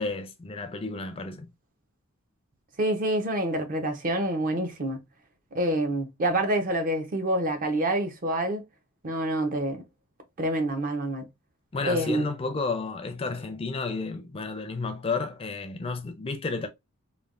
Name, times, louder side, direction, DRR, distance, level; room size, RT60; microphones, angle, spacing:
voice 1, 0.0-1.5 11.7-16.7, left 4 dB, 25° left, 0.4 m, -31 dB
voice 2, 2.8-5.0 5.5-8.6 9.0-9.8 10.4-11.3 11.8-12.2, right 1 dB, 40° right, 0.6 m, -27 dB
3.2 x 2.1 x 2.4 m
head